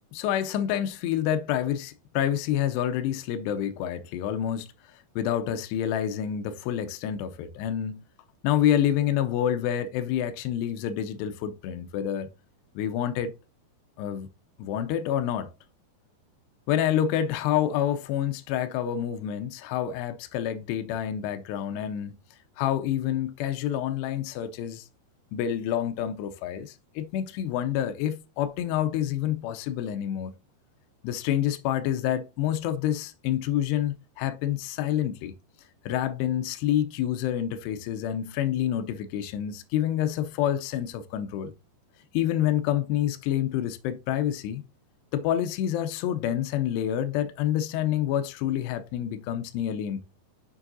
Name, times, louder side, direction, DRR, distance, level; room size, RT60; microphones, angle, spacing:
voice 1, 0.1-8.0 8.4-12.3 12.8-13.3 14.0-14.3 14.6-15.5 16.7-22.2 22.6-24.9 25.3-30.3 31.0-35.3 35.8-41.5 42.1-44.6 45.1-50.0, left 10 dB, 80° left, 2.5 m, -28 dB
7.2 x 6.1 x 2.6 m
omnidirectional pair, 5.1 m